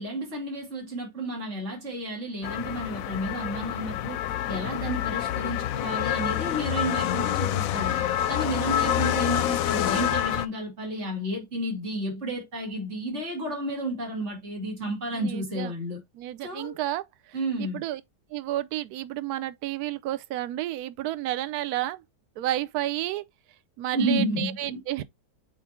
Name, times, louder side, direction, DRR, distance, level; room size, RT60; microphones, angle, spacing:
voice 1, 0.0-4.2 4.5-8.0 8.3-16.0 16.4-16.8 17.3-17.8 23.9-24.8, right 1 dB, 40° right, 2.9 m, -31 dB
sound 1, 2.4-10.5, left 11 dB, 70° left, 0.9 m, -27 dB
voice 2, 15.1-15.7 16.1-17.0 17.6-18.0 18.3-22.0 22.4-23.2 23.8-25.0, right 14 dB, 70° right, 1.1 m, -31 dB
8.0 x 2.8 x 4.3 m
omnidirectional pair, 1.8 m